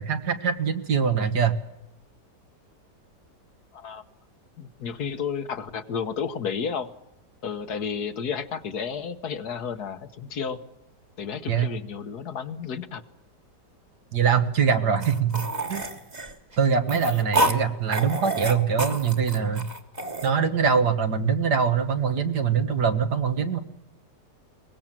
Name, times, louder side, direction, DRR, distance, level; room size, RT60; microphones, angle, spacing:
voice 1, 0.0-1.5 11.5-11.7 14.1-15.4 15.7-15.8 16.6-19.7 20.2-23.6, right 6 dB, 65° right, 8 dB, 2.1 m, -23 dB
voice 2, 3.7-4.0 4.6-6.9 7.4-10.6 11.2-13.0 14.8-15.0, left 6 dB, 65° left, 9 dB, 1.6 m, -32 dB
sound 1, 15.0-17.6 17.9-20.3, right 1 dB, 25° right, 1.7 m, -28 dB
23.0 x 20.0 x 7.5 m, 0.88 s
omnidirectional pair, 1.9 m